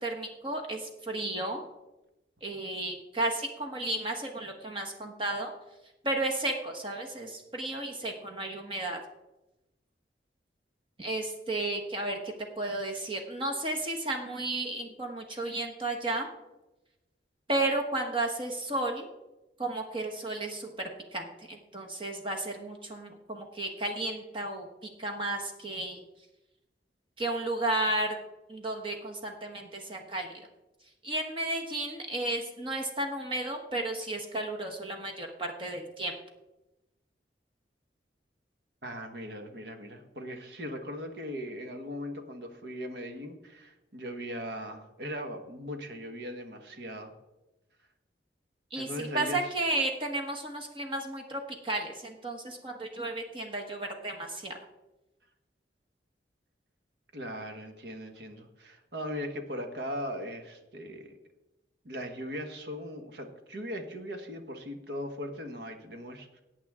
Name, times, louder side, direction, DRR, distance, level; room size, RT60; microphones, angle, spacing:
voice 1, 0.0-1.6 2.4-5.5 6.0-9.0 11.0-16.3 17.5-19.1 19.6-24.7 25.0-26.0 27.2-28.2 28.5-30.5 31.0-36.2 48.7-54.6, right 2 dB, 30° right, 1 dB, 1.2 m, -33 dB
voice 2, 38.8-47.1 48.8-49.5 57.1-61.1 61.8-66.4, equal, 70° right, 5 dB, 1.5 m, -39 dB
18.0 x 8.4 x 3.7 m, 1.0 s
head